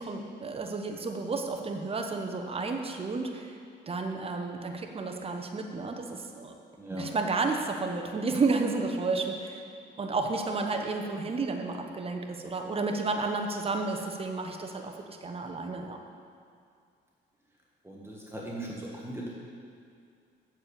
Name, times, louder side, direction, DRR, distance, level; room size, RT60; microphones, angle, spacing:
voice 1, 0.0-3.6 3.9-6.5 6.9-9.6 10.0-16.0, right 3 dB, 30° right, 4 dB, 1.0 m, -31 dB
voice 2, 6.8-7.1 17.8-19.3, right 1 dB, 10° right, -4 dB, 1.5 m, -38 dB
7.6 x 7.4 x 7.0 m, 2.4 s
cardioid pair, 90°, 20 cm